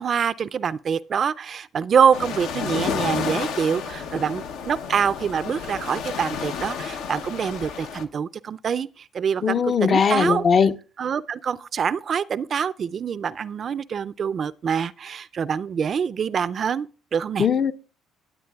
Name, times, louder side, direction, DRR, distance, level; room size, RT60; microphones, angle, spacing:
voice 1, 0.0-10.4 11.0-17.5, right 7 dB, 50° right, 0.3 m, -25 dB
sound 1, 2.1-8.0, left 6 dB, 80° left, 0.7 m, -31 dB
voice 2, 9.4-10.7 17.4-17.7, left 6 dB, 45° left, 0.6 m, -19 dB
16.5 x 8.2 x 2.3 m
supercardioid pair, 80°, 0 cm